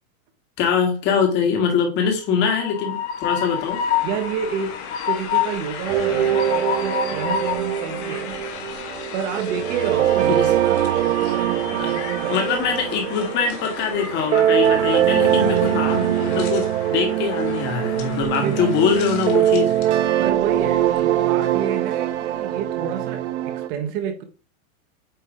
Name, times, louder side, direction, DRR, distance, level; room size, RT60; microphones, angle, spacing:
voice 1, 0.6-3.8 10.3-10.5 11.8-11.9 12.3-19.7, left 6 dB, 25° left, 1.7 m, -23 dB
Train, 2.2-20.0, left 8 dB, 50° left, 1.8 m, -31 dB
voice 2, 4.0-4.8 5.1-8.3 9.1-12.4 18.4-18.7 20.2-24.2, right 7 dB, 20° right, 0.7 m, -29 dB
sound 1, 5.9-23.7, right 12 dB, 55° right, 0.8 m, -22 dB
8.9 x 3.2 x 3.6 m
supercardioid pair, 160°, 42 cm